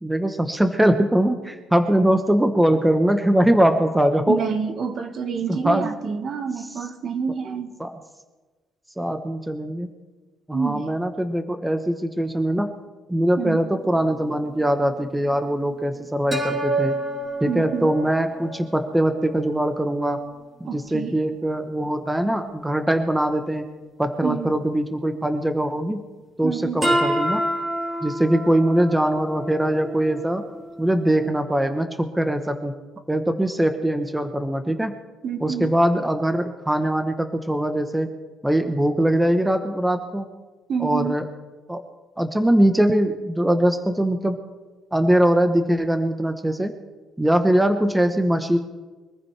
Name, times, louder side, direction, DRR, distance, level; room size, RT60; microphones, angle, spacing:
voice 1, 0.0-4.4 5.5-5.9 7.8-7.9 9.0-9.9 10.5-12.7 13.1-17.0 17.4-20.2 20.6-23.7 24.0-26.0 26.4-27.4 28.0-30.4 30.8-32.7 33.1-34.9 35.4-38.1 38.4-40.3 40.8-41.2 41.7-41.8 42.2-44.4 44.9-46.7 47.2-48.6, right 1 dB, 5° right, 7 dB, 1.0 m, -21 dB
voice 2, 4.3-7.7 10.5-10.9 13.4-13.6 17.5-17.9 20.7-21.2 24.2-24.5 26.4-26.8 35.2-35.7 40.7-41.2, right 6 dB, 50° right, 7 dB, 1.5 m, -27 dB
sound 1, 13.8-13.9 16.3-19.5 20.0-20.1 26.8-31.3, right 1 dB, 25° right, 3.9 m, -28 dB
23.5 x 14.5 x 3.3 m, 1.3 s
cardioid pair, 125°, 0 cm